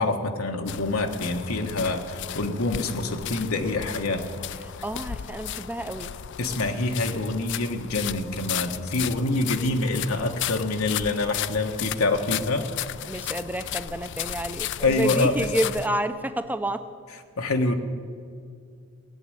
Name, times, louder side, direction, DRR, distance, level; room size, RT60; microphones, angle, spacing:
voice 1, 0.0-4.2 6.4-12.7 14.8-15.5 17.4-17.7, left 2 dB, 90° left, 4 dB, 1.3 m, -26 dB
sound 1, 0.7-15.9, left 11 dB, 55° left, 0.4 m, -34 dB
voice 2, 4.8-6.1 13.1-16.8, right 1 dB, 10° right, 11 dB, 0.6 m, -29 dB
18.5 x 7.5 x 9.8 m, 2.2 s
head